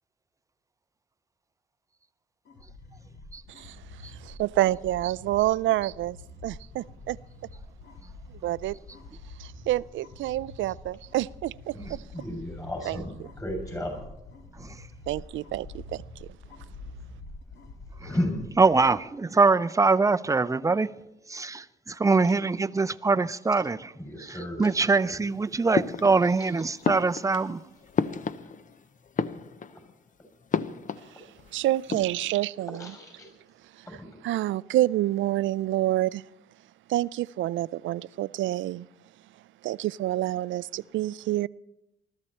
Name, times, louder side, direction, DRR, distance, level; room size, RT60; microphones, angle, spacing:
sound 1, 2.4-18.8, left 2 dB, 60° left, 3.0 m, -46 dB
voice 1, 3.5-6.2 6.4-7.2 8.4-8.8 9.4-12.0 12.8-13.3 15.1-16.3 31.1-31.3 31.5-32.9 33.8-33.9 34.2-36.2 36.9-38.9 39.6-41.5, right 15 dB, 75° right, 0.4 m, -28 dB
voice 2, 11.7-13.1 13.4-14.0 18.0-18.4 24.0-24.7 29.7-29.8 32.8-33.3 33.9-34.1, left 1 dB, 15° left, 6.8 m, -33 dB
voice 3, 14.5-14.9 18.0-18.1 18.6-20.9 21.3-23.9 24.2-27.6, right 4 dB, 15° right, 0.6 m, -23 dB
sound 2, 25.7-26.5 26.8-28.8 29.1-29.9 30.5-31.5 31.7-32.3, left 6 dB, 40° left, 0.8 m, -31 dB
20.5 x 13.5 x 4.4 m
cardioid pair, 90°, 20 cm